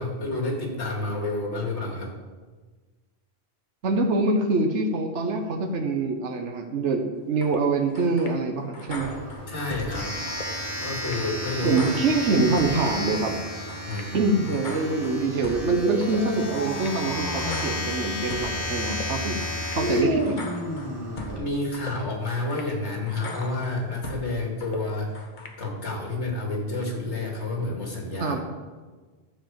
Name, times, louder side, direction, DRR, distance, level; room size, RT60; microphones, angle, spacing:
voice 1, 0.0-2.1 9.5-10.1 10.8-11.8 13.8-14.3 21.3-25.1 25.6-28.4, left 2 dB, 75° left, -1 dB, 2.6 m, -29 dB
voice 2, 3.8-9.1 11.6-13.4 14.1-19.4 19.8-20.4 28.2-28.4, right 3 dB, 85° right, 4 dB, 1.4 m, -25 dB
sound 1, 7.4-7.6 7.9-8.4 8.7-9.9 10.3-10.5 10.8-11.2 11.6-12.8 13.1-13.3 13.7-14.1 14.5-15.7 16.0-16.2 16.5-17.0 17.3-18.5 18.9-19.1 19.4-19.8 20.2-21.4 21.7-21.9 22.3-22.7 23.1-24.3 24.6-24.8 25.1-25.6, left 2 dB, 45° left, 1.3 m, -40 dB
Domestic sounds home sounds, 8.9-21.4, left 1 dB, 15° right, 3.2 m, -33 dB
sound 2, 15.6-17.9 19.7-21.5 23.1-23.7, equal, 15° left, 1.2 m, -30 dB
11.5 x 5.0 x 7.5 m, 1.3 s
omnidirectional pair, 1.2 m